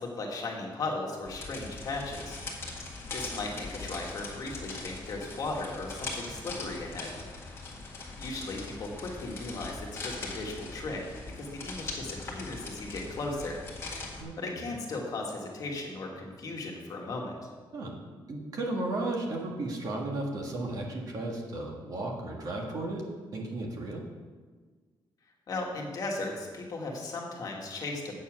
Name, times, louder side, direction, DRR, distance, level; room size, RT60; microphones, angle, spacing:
voice 1, 0.0-2.4 3.1-7.1 8.2-11.0 11.4-13.6 14.4-17.4 25.5-28.2, left 2 dB, 45° left, -1 dB, 1.6 m, -36 dB
sound 1, 1.2-14.2, left 3 dB, 30° left, 1.8 m, -41 dB
voice 2, 14.2-14.7 17.7-17.9 18.3-23.0 23.3-24.0, right 2 dB, 45° right, 0 dB, 1.6 m, -34 dB
8.4 x 7.0 x 6.1 m, 1.5 s
wide cardioid pair, 180°, 9 cm